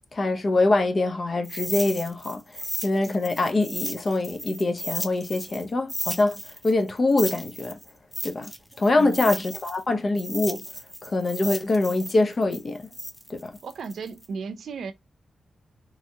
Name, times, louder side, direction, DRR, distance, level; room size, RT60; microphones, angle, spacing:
voice 1, 0.1-2.4 2.8-7.8 8.2-8.5 8.8-10.6 11.0-12.9 13.3-13.5, left 2 dB, 45° left, 0.7 m, -24 dB
sound 1, 1.4-5.6 5.9-9.8 10.2-14.3, equal, 5° left, 0.6 m, -35 dB
voice 2, 13.6-14.9, right 5 dB, 80° right, 0.5 m, -35 dB
3.2 x 2.8 x 2.2 m
cardioid pair, 70°, 0 cm